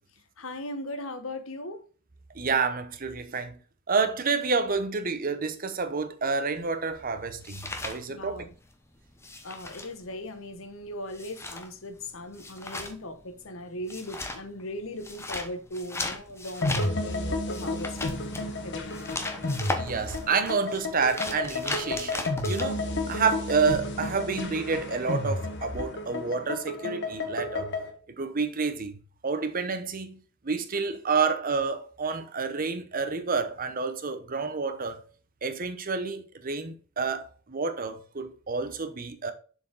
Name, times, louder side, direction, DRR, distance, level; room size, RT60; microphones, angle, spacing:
voice 1, 0.4-1.8 8.1-8.5 9.4-19.0 23.0-23.1, left 1 dB, 75° left, 1.0 m, -38 dB
voice 2, 2.3-3.5 3.9-8.5 19.8-27.8 28.2-29.0 29.2-35.0 35.4-39.3, right 4 dB, 45° right, 0.9 m, -29 dB
sound 1, 6.6-8.7 9.0-22.6, left 2 dB, 15° left, 0.8 m, -37 dB
sound 2, 16.6-27.9, left 2 dB, 60° left, 1.2 m, -32 dB
7.0 x 4.6 x 3.8 m
head